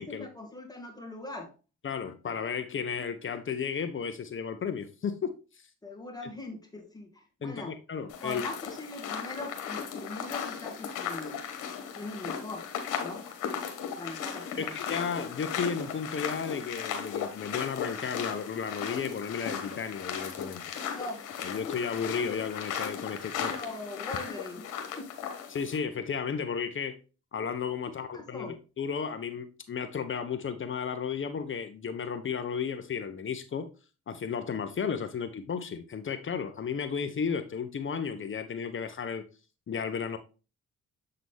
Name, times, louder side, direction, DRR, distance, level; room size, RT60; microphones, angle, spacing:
voice 1, 0.1-1.5 5.8-7.8 8.2-11.5 11.9-12.6 13.0-13.2 14.0-14.8 20.9-21.3 23.3-25.1 28.0-28.6, left 2 dB, 15° left, 2.0 m, -41 dB
voice 2, 1.8-5.3 7.4-8.4 14.6-20.6 21.4-23.5 25.5-27.0 27.3-33.7 34.1-39.2 39.7-40.2, left 6 dB, 40° left, 0.9 m, -33 dB
sound 1, 8.1-25.8, left 7 dB, 90° left, 1.4 m, -36 dB
7.7 x 3.9 x 3.5 m
cardioid pair, 90°, 30 cm